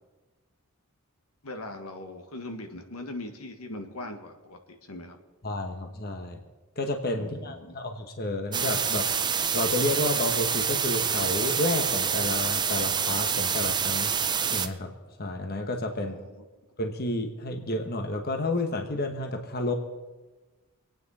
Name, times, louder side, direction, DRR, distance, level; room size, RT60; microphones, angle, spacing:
voice 1, 1.4-5.2 7.1-7.8 16.0-16.4, left 1 dB, 85° left, 5 dB, 1.7 m, -40 dB
voice 2, 5.4-6.4 6.8-9.0 9.5-14.1 14.5-14.9 15.2-16.2 16.8-19.7, left 2 dB, 45° left, 5 dB, 1.2 m, -30 dB
sound 1, 8.5-14.7, right 7 dB, 20° right, 0.6 m, -27 dB
27.0 x 9.4 x 4.2 m, 1.2 s
head